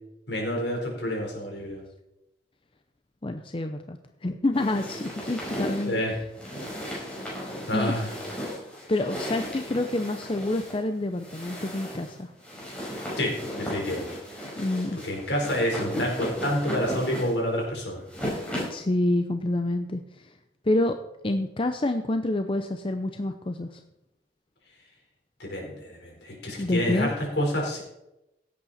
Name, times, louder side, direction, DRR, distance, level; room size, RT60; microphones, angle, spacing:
voice 1, 0.3-1.8 5.9-6.1 7.7-8.1 13.2-14.1 15.0-18.0 25.4-27.8, equal, 75° left, -1 dB, 4.4 m, -28 dB
voice 2, 3.2-6.0 7.7-8.0 8.9-12.3 14.6-15.0 18.7-20.3 20.6-20.9 21.2-23.8 26.6-27.1, left 1 dB, 30° left, 7 dB, 0.6 m, -27 dB
sound 1, 4.5-18.8, equal, 5° left, 5.0 m, -36 dB
16.5 x 8.4 x 4.2 m, 0.90 s
head